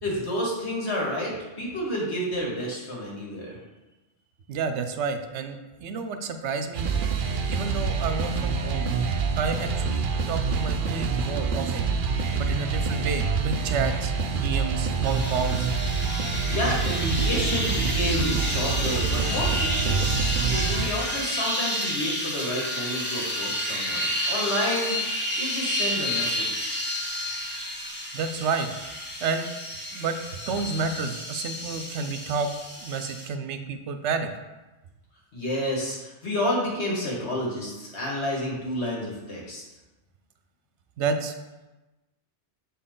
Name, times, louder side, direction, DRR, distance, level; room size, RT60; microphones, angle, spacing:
voice 1, 0.0-3.6 16.4-20.1 20.4-25.0 25.4-26.8 35.3-39.6, left 1 dB, 70° left, -4 dB, 1.9 m, -30 dB
voice 2, 4.5-6.9 7.5-8.9 9.4-11.9 12.4-15.7 28.1-28.7 29.2-29.5 29.9-30.2 30.5-32.5 32.8-34.3 41.0-41.3, right 5 dB, 80° right, 8 dB, 0.9 m, -30 dB
sound 1, 6.8-20.9, right 5 dB, 60° right, 0.6 m, -26 dB
sound 2, 15.0-33.3, equal, 10° left, 0.9 m, -31 dB
7.1 x 4.3 x 3.7 m, 1.1 s
omnidirectional pair, 1.2 m